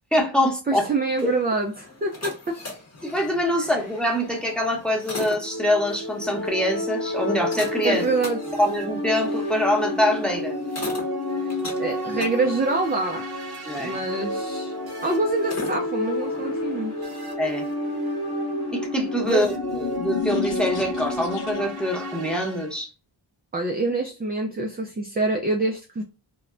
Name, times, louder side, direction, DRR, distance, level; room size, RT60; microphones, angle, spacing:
voice 1, 0.1-0.8 1.2-1.3 3.0-8.0 8.6-10.5 13.6-14.0 17.4-17.7 18.7-22.9, left 1 dB, ahead, 0.8 m, -24 dB
voice 2, 0.7-2.6 3.6-3.7 7.8-8.4 11.8-13.3 13.8-14.7 15.0-16.9 19.2-19.5 23.5-26.0, right 3 dB, 20° right, 0.3 m, -26 dB
sound 1, 1.0-19.5, left 2 dB, 30° left, 0.8 m, -41 dB
sound 2, 5.4-22.7, left 1 dB, 50° right, 0.8 m, -30 dB
sound 3, 18.8-21.9, left 7 dB, 85° left, 0.6 m, -33 dB
2.2 x 2.1 x 3.6 m
cardioid pair, 50°, 50 cm